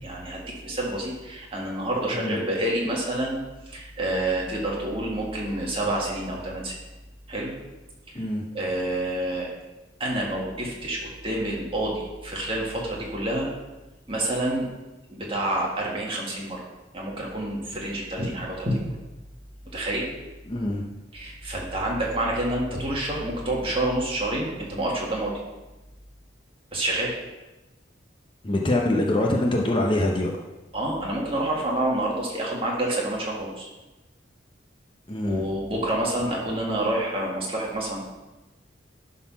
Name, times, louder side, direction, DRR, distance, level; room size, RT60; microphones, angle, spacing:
voice 1, 0.0-3.4 3.7-6.7 7.3-7.5 8.1-8.2 8.5-9.5 10.0-13.5 14.1-14.7 15.1-16.6 16.9-18.8 19.7-20.1 21.1-25.3 26.7-27.2 30.7-33.7 35.2-38.0, right 1 dB, 30° right, -3 dB, 2.0 m, -28 dB
voice 2, 2.1-2.4 8.1-8.4 20.5-20.9 28.4-30.4 35.1-35.4, left 1 dB, 25° left, 0 dB, 0.7 m, -24 dB
11.0 x 4.0 x 5.8 m, 1.1 s
head